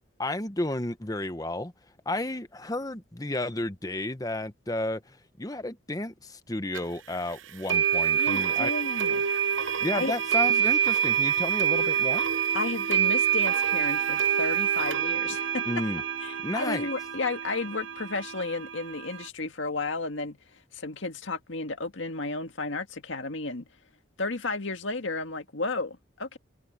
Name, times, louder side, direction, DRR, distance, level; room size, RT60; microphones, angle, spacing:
voice 1, 0.2-1.7 2.1-8.7 9.8-12.3 15.7-16.0 16.4-16.9, left 1 dB, 20° left, 1.0 m, -32 dB
sound 1, 6.7-6.8 7.7-19.3, right 8 dB, 80° right, 0.8 m, -26 dB
voice 2, 8.2-9.3 9.9-10.1 12.5-15.6 16.2-20.4 20.7-23.7 24.2-26.4, left 3 dB, 80° left, 1.9 m, -33 dB
head